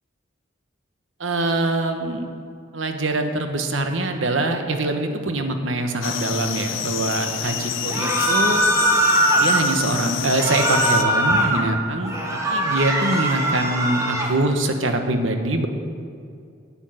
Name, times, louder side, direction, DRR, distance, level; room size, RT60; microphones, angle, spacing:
voice 1, 1.2-2.2 2.7-8.6 9.3-15.7, right 2 dB, 85° right, 6 dB, 1.2 m, -24 dB
sound 1, 6.0-11.0, left 8 dB, 90° left, 0.9 m, -28 dB
sound 2, 7.9-9.6 10.3-11.6 12.0-14.3, right 1 dB, 15° right, 1.5 m, -21 dB
10.0 x 7.2 x 9.1 m, 2.4 s
head